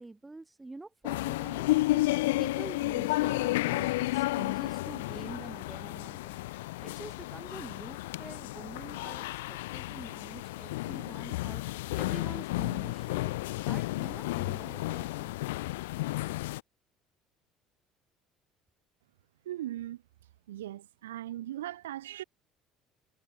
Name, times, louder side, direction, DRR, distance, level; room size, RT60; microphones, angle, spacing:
voice 1, 0.0-15.4, right 2 dB, 15° right, 5.9 m, -47 dB
sound 1, 1.0-16.6, left 19 dB, 75° left, 0.3 m, -32 dB
voice 2, 19.4-20.0 20.5-22.2, right 13 dB, 80° right, 3.2 m, -39 dB
figure-of-eight pair, 60°, 0 cm